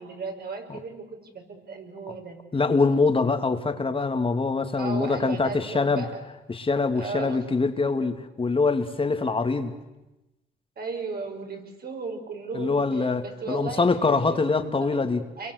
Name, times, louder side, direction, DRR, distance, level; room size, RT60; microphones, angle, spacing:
voice 1, 0.0-2.4 4.7-6.2 6.9-7.5 10.8-15.0 15.4-15.5, right 4 dB, 50° right, 4 dB, 5.9 m, -36 dB
voice 2, 2.5-6.0 6.5-9.7 12.5-15.2, left 4 dB, 25° left, 7 dB, 2.4 m, -24 dB
28.5 x 23.0 x 8.2 m, 1.0 s
cardioid pair, 90°, 20 cm